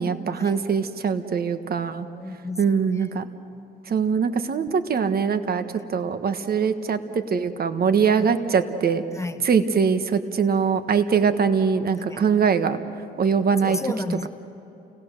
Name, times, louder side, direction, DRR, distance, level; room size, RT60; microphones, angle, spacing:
voice 1, 0.0-2.1 2.6-3.2 3.9-5.6 5.9-9.0 9.4-12.8 13.2-13.8, right 6 dB, 50° right, 9 dB, 1.4 m, -22 dB
voice 2, 2.1-3.2 8.2-8.4 9.1-9.5 12.0-12.3 13.6-14.3, left 2 dB, 15° left, 9 dB, 1.1 m, -33 dB
29.5 x 19.5 x 6.6 m, 3.0 s
cardioid pair, 90°, 20 cm